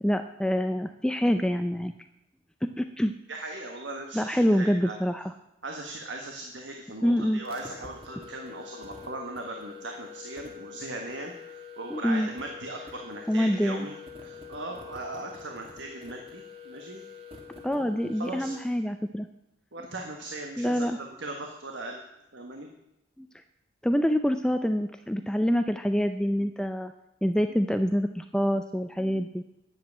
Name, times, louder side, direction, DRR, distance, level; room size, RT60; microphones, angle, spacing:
voice 1, 0.0-1.9 2.6-3.1 4.1-5.3 7.0-7.4 11.9-12.3 13.3-13.9 17.6-19.3 20.6-21.0 23.2-23.3 23.8-26.9 27.2-29.4, equal, 5° left, 7 dB, 0.4 m, -26 dB
voice 2, 3.3-5.0 5.6-13.9 14.2-17.0 17.6-17.9 18.2-18.6 19.7-22.0 22.3-22.7, right 2 dB, 80° right, 3 dB, 1.5 m, -39 dB
sound 1, 7.4-18.7, left 6 dB, 30° right, 2.0 m, -46 dB
10.5 x 8.0 x 8.7 m, 0.86 s
head